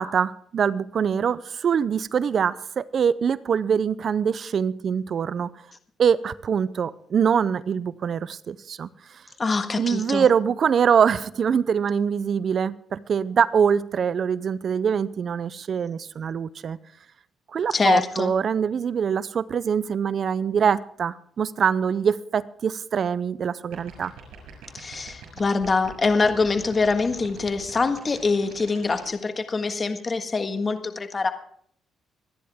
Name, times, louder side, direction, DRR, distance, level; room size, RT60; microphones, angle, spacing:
voice 1, 0.0-5.5 6.0-9.2 9.8-16.8 17.5-24.1, right 7 dB, 55° right, 18 dB, 0.5 m, -24 dB
voice 2, 9.4-10.2 17.7-18.3 24.7-31.3, left 4 dB, 35° left, 8 dB, 1.6 m, -24 dB
sound 1, 23.6-29.2, right 9 dB, 85° right, 6.6 m, -43 dB
26.0 x 10.5 x 3.6 m, 0.62 s
cardioid pair, 90°, 0 cm